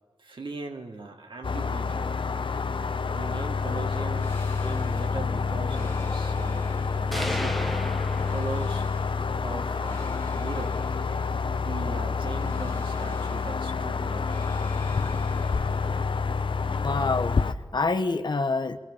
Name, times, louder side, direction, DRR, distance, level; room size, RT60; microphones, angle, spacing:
voice 1, 0.2-2.1 3.1-6.7 7.0-7.6 8.3-8.8 9.4-10.8 11.6-14.5, right 3 dB, 70° right, 3.0 m, -39 dB
sound 1, 1.4-17.5, left 5 dB, 75° left, 1.0 m, -28 dB
sound 2, 4.2-5.3 5.6-7.6 8.1-9.3 9.8-11.8 12.3-13.7 14.2-16.3, left 2 dB, 25° left, 2.2 m, -46 dB
sound 3, 7.1-9.1, equal, ahead, 1.7 m, -34 dB
voice 2, 16.8-18.8, left 3 dB, 55° left, 1.3 m, -27 dB
25.5 x 21.5 x 7.2 m
wide cardioid pair, 100°, 9 cm